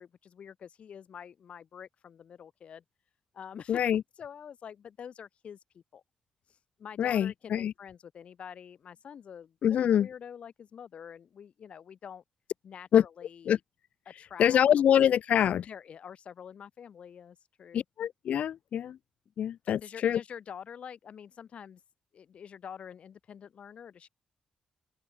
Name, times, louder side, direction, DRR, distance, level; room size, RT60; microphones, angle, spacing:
voice 1, 0.0-2.8 3.3-3.8 4.2-6.0 6.5-9.6 9.8-12.2 12.6-13.6 14.1-14.6 15.4-17.8 19.7-21.8 22.1-24.1, left 8 dB, 55° left, 7.6 m, -46 dB
voice 2, 3.7-4.0 7.0-7.7 9.6-10.1 12.9-13.0 13.4-13.6 14.4-15.6 17.7-19.0 19.4-20.2, left 9 dB, 75° left, 1.5 m, -25 dB
open air
wide cardioid pair, 155°, 2 cm